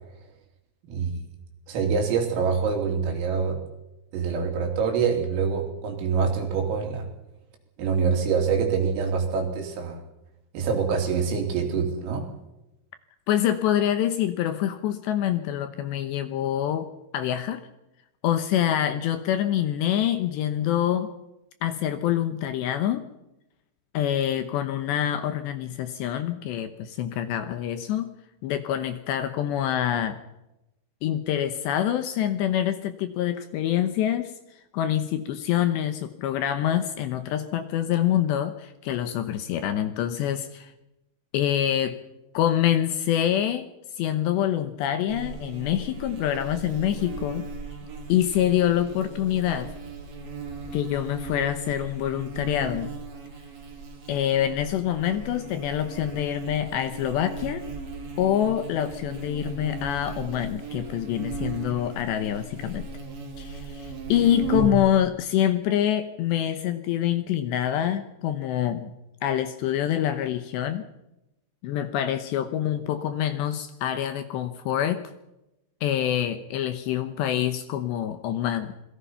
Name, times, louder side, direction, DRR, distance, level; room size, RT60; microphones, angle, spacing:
voice 1, 0.9-1.2 1.7-3.6 4.1-7.1 7.8-10.0 10.5-12.3, right 5 dB, 80° right, 2 dB, 6.0 m, -25 dB
voice 2, 13.3-16.9 17.1-17.6 18.2-21.1 21.6-23.1 23.9-28.1 28.4-30.2 31.0-34.3 34.7-40.7 41.3-42.0 42.3-43.6 44.0-47.5 48.1-49.7 50.7-52.9 54.1-57.6 58.2-62.9 63.4-68.9 69.2-70.9 71.6-75.0 75.8-78.7, left 11 dB, 75° left, 9 dB, 2.8 m, -26 dB
Buzz, 45.1-64.9, right 4 dB, 40° right, 3.5 m, -37 dB
27.0 x 21.0 x 5.7 m, 0.94 s
omnidirectional pair, 5.9 m